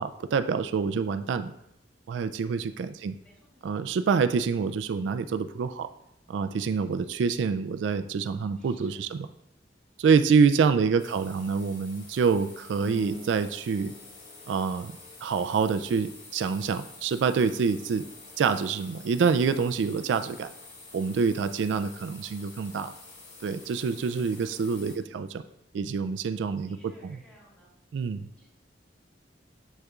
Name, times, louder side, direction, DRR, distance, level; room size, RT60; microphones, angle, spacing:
voice 1, 0.0-1.5 2.1-3.1 3.6-5.9 6.3-9.3 10.0-13.9 14.5-14.9 15.2-18.1 18.4-20.5 20.9-22.9 23.4-25.4 25.7-26.8 27.0-27.2 27.9-28.3, right 5 dB, 85° right, 10 dB, 0.3 m, -26 dB
voice 2, 2.9-3.7 8.6-9.1 11.0-11.4 24.7-25.0 26.4-27.7 28.4-28.5, equal, 5° left, -7 dB, 2.6 m, -58 dB
sound 1, 11.0-25.0, left 3 dB, 75° left, 1.9 m, -49 dB
sound 2, 12.8-15.4, right 1 dB, 20° right, 0.7 m, -44 dB
7.3 x 6.4 x 2.4 m, 0.79 s
head